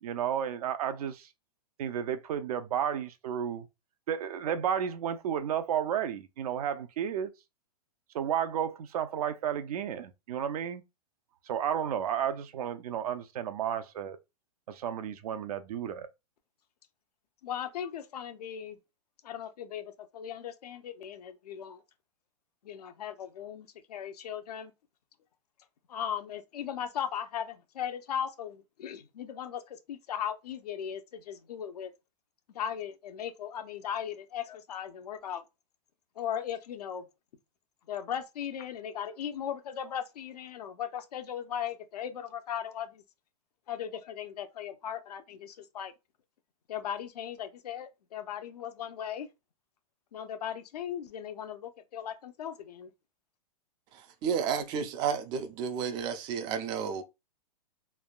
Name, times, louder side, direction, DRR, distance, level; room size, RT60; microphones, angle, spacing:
voice 1, 0.0-1.3 1.8-3.7 4.1-7.3 8.1-10.8 11.5-14.2 14.7-16.1, right 9 dB, 70° right, 0.6 m, -32 dB
voice 2, 17.4-18.8 19.2-21.8 22.6-24.7 25.9-31.9 32.5-35.4 36.2-37.1 37.9-43.0 43.7-45.9 46.7-49.3 50.1-52.9, left 9 dB, 85° left, 0.7 m, -37 dB
voice 3, 53.9-57.0, right 7 dB, 20° right, 0.3 m, -32 dB
3.3 x 2.2 x 2.4 m
hypercardioid pair, 155°, 20 cm